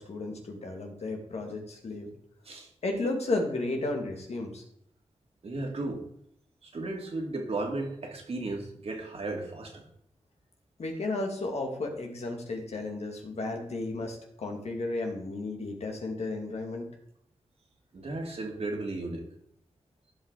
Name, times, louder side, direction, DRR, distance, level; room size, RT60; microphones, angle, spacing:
voice 1, 0.0-2.1 2.8-4.6 10.8-16.9, left 2 dB, 70° left, 2 dB, 2.3 m, -33 dB
voice 2, 5.4-6.0 6.6-9.9 17.9-19.3, right 2 dB, 65° right, 1 dB, 2.4 m, -35 dB
15.0 x 5.3 x 3.9 m, 0.71 s
cardioid pair, 70°, 11 cm